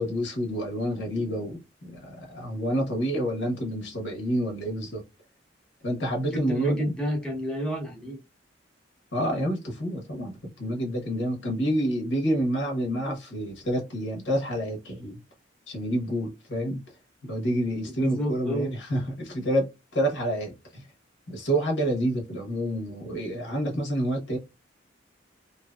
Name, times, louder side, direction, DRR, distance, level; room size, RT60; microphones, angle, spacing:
voice 1, 0.0-5.0 5.8-6.9 9.1-15.2 15.7-16.8 17.2-20.8 21.3-24.4, equal, 70° left, 1.1 m, -28 dB
voice 2, 6.3-8.2 17.9-18.7, equal, 5° left, 0.8 m, -29 dB
2.9 x 2.7 x 2.3 m
head